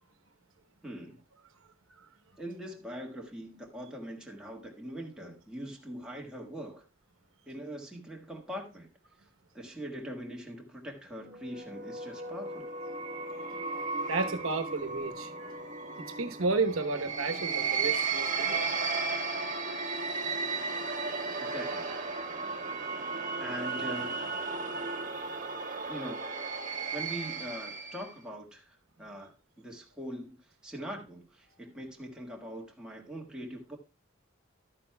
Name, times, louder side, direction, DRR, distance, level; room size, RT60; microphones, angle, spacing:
voice 1, 0.8-1.2 2.4-6.8 7.5-8.9 9.2-9.3 9.5-12.7 21.4-21.9 23.4-24.2 25.9-26.3 26.9-33.8, equal, 5° right, 1.6 m, -42 dB
sound 1, 11.3-28.1, right 4 dB, 40° right, 1.1 m, -35 dB
voice 2, 14.1-15.5 16.2-18.6, right 3 dB, 90° right, 1.0 m, -32 dB
12.5 x 9.6 x 2.3 m
head